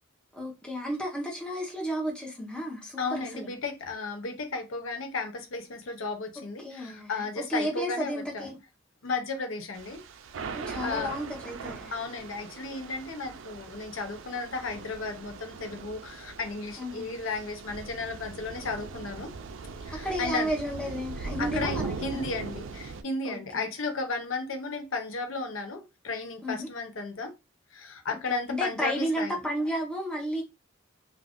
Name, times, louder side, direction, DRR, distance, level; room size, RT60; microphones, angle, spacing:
voice 1, 0.3-3.5 6.6-7.1 7.4-8.6 10.5-11.9 16.8-17.1 20.0-22.2 23.3-23.6 26.4-26.7 28.3-30.4, equal, 5° left, 0.8 m, -32 dB
voice 2, 3.0-8.5 9.0-10.0 10.8-11.2 11.9-19.3 19.8-20.5 21.4-27.3 27.7-29.4, left 3 dB, 75° left, 0.7 m, -34 dB
Thunder / Rain, 9.7-23.0, right 4 dB, 65° right, 0.4 m, -40 dB
2.5 x 2.3 x 3.5 m
head